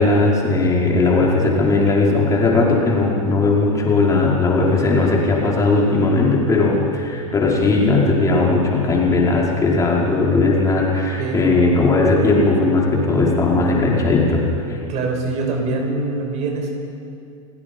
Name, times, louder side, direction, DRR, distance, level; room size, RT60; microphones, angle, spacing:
voice 1, 0.0-14.9, left 3 dB, 20° left, -3 dB, 5.2 m, -17 dB
voice 2, 14.9-16.7, right 3 dB, 40° right, 2 dB, 5.7 m, -24 dB
29.0 x 18.0 x 5.5 m, 2.5 s
figure-of-eight pair, 95°, 18 cm